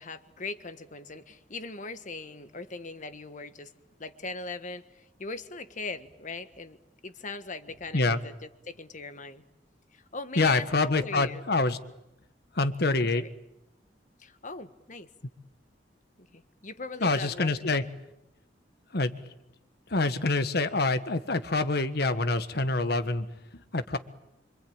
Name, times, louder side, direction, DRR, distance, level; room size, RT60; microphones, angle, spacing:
voice 1, 0.0-3.7 4.0-6.8 7.0-9.4 9.9-11.4 13.0-13.3 14.2-15.1 16.2-17.9, left 3 dB, 45° left, 10 dB, 1.5 m, -40 dB
voice 2, 10.3-11.8 12.5-13.2 17.0-17.8 18.9-19.1 19.9-23.3 23.5-24.0, left 3 dB, 65° left, 10 dB, 1.5 m, -26 dB
26.0 x 25.5 x 8.9 m, 0.86 s
head